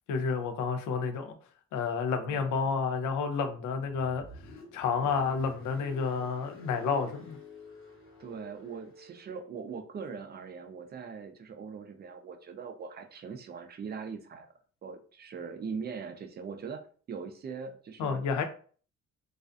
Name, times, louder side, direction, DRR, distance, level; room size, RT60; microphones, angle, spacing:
voice 1, 0.1-1.3 1.7-4.2 4.7-7.4 18.0-18.4, left 5 dB, 75° left, 7 dB, 0.5 m, -30 dB
voice 2, 2.3-2.7 8.2-14.5 14.8-18.3, right 5 dB, 35° right, 6 dB, 0.4 m, -41 dB
Car, 3.8-9.3, left 3 dB, 40° left, 1.0 m, -50 dB
2.4 x 2.2 x 2.4 m, 0.43 s
cardioid pair, 90°, 30 cm